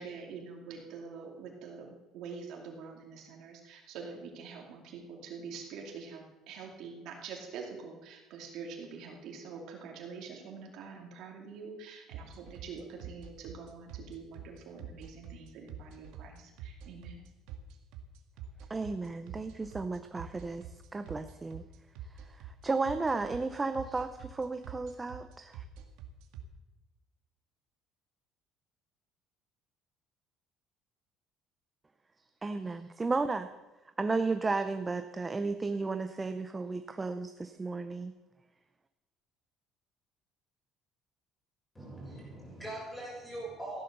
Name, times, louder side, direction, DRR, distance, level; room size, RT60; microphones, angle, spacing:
voice 1, 0.0-17.2, right 5 dB, 55° right, 1 dB, 2.6 m, -45 dB
sound 1, 12.1-26.4, right 9 dB, 80° right, 1.9 m, -45 dB
voice 2, 18.7-21.6 22.3-25.6 32.4-33.5 34.0-38.1, right 3 dB, 15° right, 9 dB, 0.5 m, -34 dB
voice 3, 41.7-43.8, right 1 dB, 10° left, -4 dB, 6.9 m, -42 dB
14.5 x 12.0 x 6.7 m, 1.1 s
cardioid pair, 175°, 0 cm